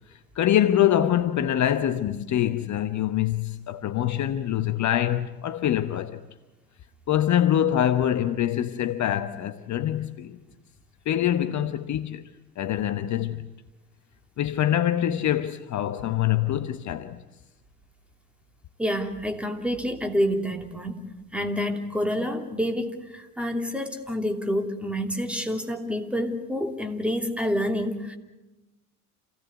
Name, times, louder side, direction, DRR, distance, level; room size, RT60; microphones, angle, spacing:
voice 1, 0.1-6.2 7.1-10.4 11.1-12.3 12.6-13.4 14.4-17.2, left 11 dB, 40° left, 1.1 m, -24 dB
voice 2, 18.8-28.2, equal, 5° right, 2.9 m, -28 dB
28.0 x 17.0 x 8.1 m
hypercardioid pair, 70°, 46 cm